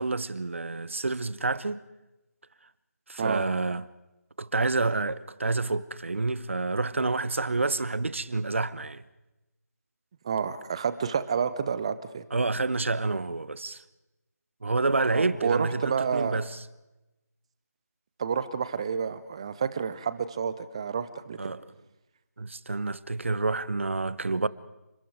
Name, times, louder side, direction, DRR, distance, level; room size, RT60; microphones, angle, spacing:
voice 1, 0.0-1.8 3.1-3.8 4.4-9.0 12.3-13.8 14.6-16.5 21.4-21.6 22.4-24.5, right 3 dB, 45° right, 1.1 m, -28 dB
voice 2, 10.2-12.2 15.1-16.4 18.2-21.5, right 6 dB, 20° right, 1.0 m, -29 dB
29.5 x 25.5 x 4.8 m
figure-of-eight pair, 160°, 9 cm